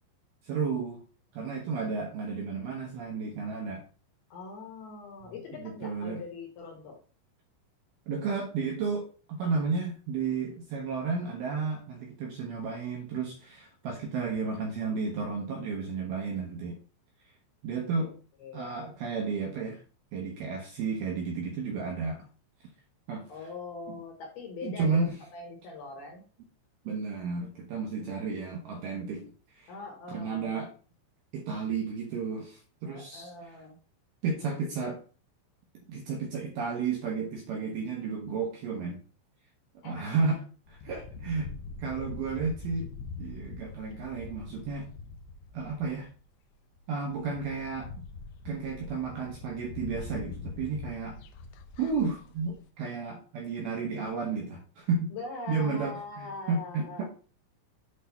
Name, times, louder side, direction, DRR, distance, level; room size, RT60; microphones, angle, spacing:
voice 1, 0.4-1.0 1.3-3.8 5.2-5.3 5.6-6.2 8.1-16.8 17.6-18.1 18.5-19.8 20.1-22.3 23.1-23.3 24.6-25.2 26.9-29.2 29.6-29.7 30.1-30.7 31.3-33.3 34.2-35.0 35.9-39.0 39.8-40.4 40.7-41.5 41.8-42.9 43.2-44.9 45.5-46.1 46.9-48.1 48.5-51.2 51.8-55.1 55.5-57.0, right 4 dB, 70° right, 1 dB, 2.4 m, -32 dB
voice 2, 4.3-7.0 18.4-18.9 23.3-26.2 28.0-28.1 29.7-30.6 32.8-33.8 39.8-40.2 55.1-57.1, left 4 dB, 65° left, 1 dB, 2.9 m, -42 dB
sound 1, 40.7-46.2 46.7-46.8 47.1-52.6, left 4 dB, 85° left, 2.3 m, -43 dB
8.5 x 3.6 x 5.6 m, 0.38 s
omnidirectional pair, 5.6 m